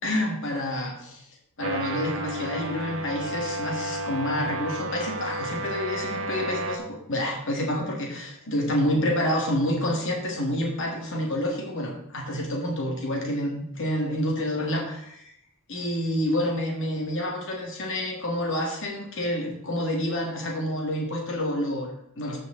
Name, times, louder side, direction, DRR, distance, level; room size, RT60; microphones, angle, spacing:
voice 1, 0.0-1.2 1.6-6.8 7.1-15.2 15.7-22.4, left 1 dB, 55° left, 0 dB, 2.1 m, -28 dB
sound 1, 1.6-6.8, right 1 dB, 60° right, 1.2 m, -32 dB
14.5 x 5.2 x 3.9 m, 0.72 s
head